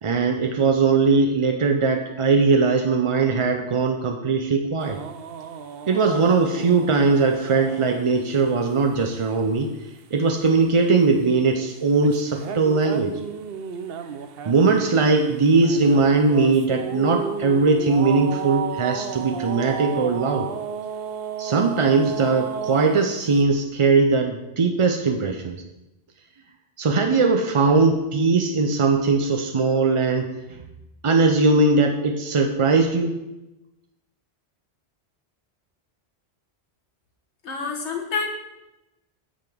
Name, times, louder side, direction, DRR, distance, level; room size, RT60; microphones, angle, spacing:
voice 1, 0.0-5.0 5.9-9.7 10.1-13.1 14.5-20.5 21.4-25.6 26.8-30.6 31.0-33.1, right 4 dB, 45° right, 4 dB, 0.4 m, -20 dB
sound 1, 4.8-8.0 12.0-23.0, right 7 dB, 65° right, 0.8 m, -33 dB
voice 2, 37.4-38.3, left 4 dB, 85° left, 0 dB, 1.6 m, -27 dB
8.5 x 7.7 x 3.5 m, 0.98 s
omnidirectional pair, 1.1 m